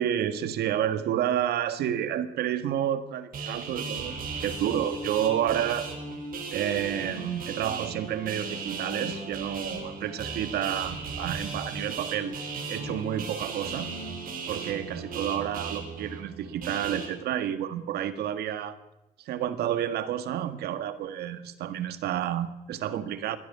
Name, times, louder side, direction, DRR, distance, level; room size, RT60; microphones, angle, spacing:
voice 1, 0.0-5.9 6.5-12.4 12.7-13.9 14.5-18.7 19.2-23.4, right 10 dB, 75° right, 12 dB, 1.7 m, -30 dB
sound 1, 3.3-17.1, right 4 dB, 55° right, 4.7 m, -36 dB
21.0 x 13.0 x 9.8 m, 0.96 s
cardioid pair, 110°, 17 cm